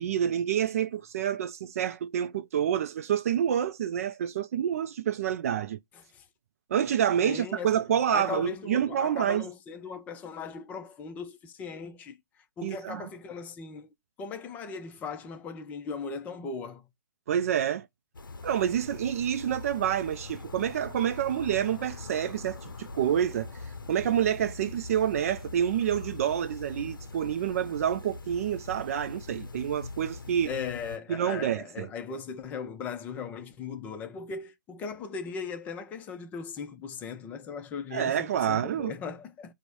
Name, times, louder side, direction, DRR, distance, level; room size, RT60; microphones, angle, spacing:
voice 1, 0.0-5.8 6.7-9.5 12.6-13.1 17.3-17.9 18.4-23.5 23.9-30.5 31.1-31.9 37.9-38.9, right 9 dB, 45° right, 0.4 m, -28 dB
voice 2, 7.2-7.7 8.1-12.2 12.6-13.9 14.2-16.8 30.5-39.5, left 5 dB, 15° left, 0.5 m, -38 dB
sound 1, 18.1-31.0, left 3 dB, 90° left, 0.6 m, -42 dB
5.1 x 2.1 x 4.6 m
hypercardioid pair, 140°, 11 cm